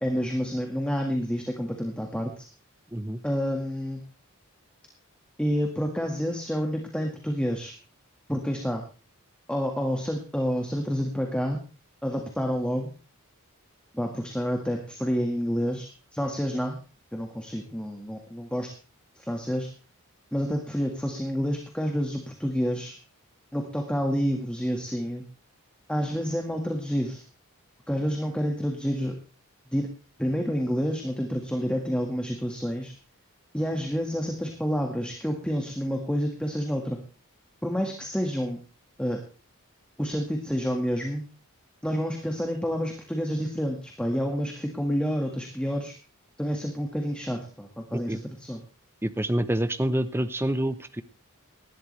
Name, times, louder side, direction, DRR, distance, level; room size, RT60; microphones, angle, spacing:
voice 1, 0.0-2.5 3.2-4.0 5.4-7.7 8.3-8.8 9.5-11.6 12.0-12.9 13.9-16.8 17.1-18.7 19.1-19.7 20.3-22.9 23.5-25.3 25.9-27.2 27.9-29.1 29.7-29.9 30.2-32.9 33.5-37.0 37.6-38.6 39.0-39.2 40.0-41.2 41.8-45.9 46.4-48.6, equal, 5° left, 2 dB, 1.7 m, -29 dB
voice 2, 2.9-3.2 47.9-48.2 49.0-51.0, right 1 dB, 10° right, 12 dB, 0.7 m, -27 dB
18.5 x 12.5 x 3.3 m, 0.34 s
head